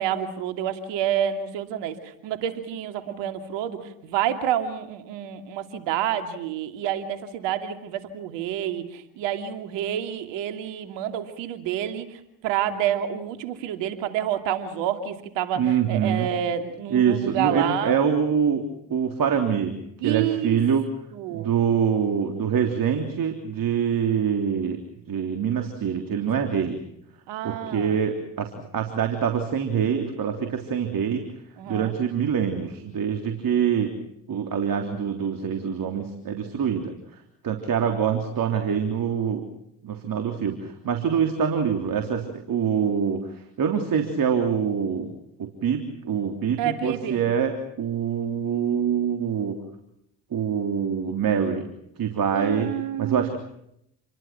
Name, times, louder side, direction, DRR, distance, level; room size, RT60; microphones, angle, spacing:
voice 1, 0.0-18.0 20.0-20.6 21.1-21.5 27.3-28.0 31.6-31.9 46.6-47.2 52.3-53.4, right 10 dB, 75° right, 7 dB, 2.9 m, -28 dB
voice 2, 15.6-16.3 16.9-18.6 18.9-19.8 20.0-20.9 21.3-24.8 25.1-26.8 27.4-31.3 31.7-34.0 34.3-36.9 37.4-39.4 39.8-49.6 50.3-51.6 52.0-52.7 53.0-53.4, right 7 dB, 50° right, 5 dB, 3.4 m, -25 dB
28.5 x 22.5 x 6.1 m, 0.77 s
hypercardioid pair, 60°, 44 cm